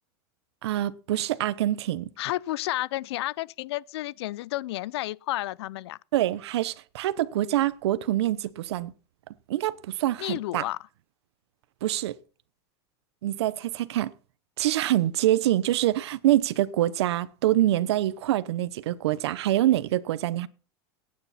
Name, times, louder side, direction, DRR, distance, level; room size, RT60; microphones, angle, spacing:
voice 1, 0.6-2.1 6.1-8.9 9.5-10.6 11.8-12.1 13.2-14.1 14.6-20.5, right 14 dB, 85° right, 0.9 m, -25 dB
voice 2, 2.2-6.0 10.2-10.8, left 16 dB, 80° left, 0.5 m, -31 dB
17.5 x 9.6 x 4.2 m
supercardioid pair, 135°, 14 cm